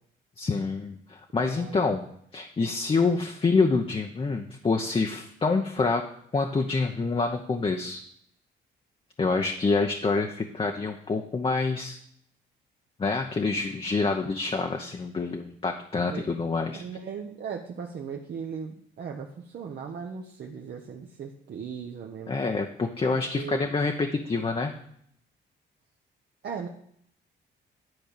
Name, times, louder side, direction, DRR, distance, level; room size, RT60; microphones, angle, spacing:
voice 1, 0.4-2.0 2.3-6.0 6.3-8.0 9.2-12.0 13.0-16.8 22.3-24.7, left 4 dB, 25° left, 3 dB, 0.8 m, -27 dB
voice 2, 1.3-1.9 16.1-16.3 16.7-22.3 23.2-23.8 26.4-26.7, right 6 dB, 55° right, 1 dB, 1.0 m, -38 dB
11.0 x 4.4 x 6.8 m, 0.69 s
cardioid pair, 90°, 20 cm